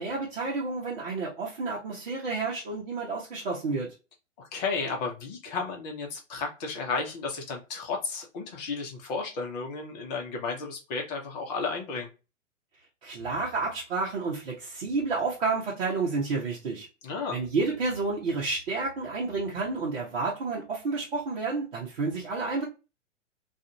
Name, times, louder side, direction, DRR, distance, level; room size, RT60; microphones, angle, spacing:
voice 1, 0.0-3.9 13.0-16.9 17.3-22.6, right 3 dB, 50° right, -4 dB, 0.8 m, -30 dB
voice 2, 4.4-12.1 17.0-17.4, left 4 dB, 30° left, 2 dB, 0.8 m, -33 dB
2.4 x 2.4 x 2.7 m, 0.30 s
figure-of-eight pair, 110°, 39 cm